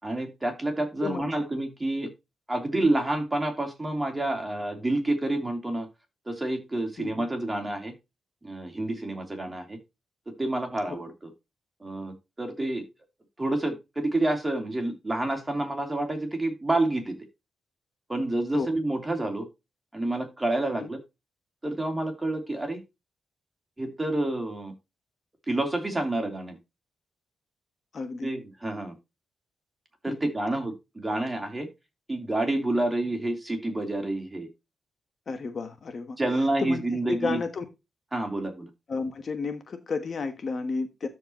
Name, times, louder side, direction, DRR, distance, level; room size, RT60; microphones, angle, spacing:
voice 1, 0.0-2.1 2.5-5.9 6.3-7.9 8.4-9.8 10.4-11.1 11.8-12.8 13.4-17.2 18.1-19.5 19.9-21.0 21.6-22.8 23.8-24.7 25.5-26.6 28.2-28.9 30.0-31.7 32.1-34.5 36.2-37.4 38.1-38.7, right 2 dB, 15° right, 3.1 m, -28 dB
voice 2, 7.0-7.3 18.5-18.7 20.8-20.9 27.9-28.3 30.1-30.3 35.3-36.2 36.6-37.6 38.9-41.1, left 4 dB, 45° left, 1.2 m, -32 dB
13.0 x 4.8 x 3.0 m
cardioid pair, 125°, 0 cm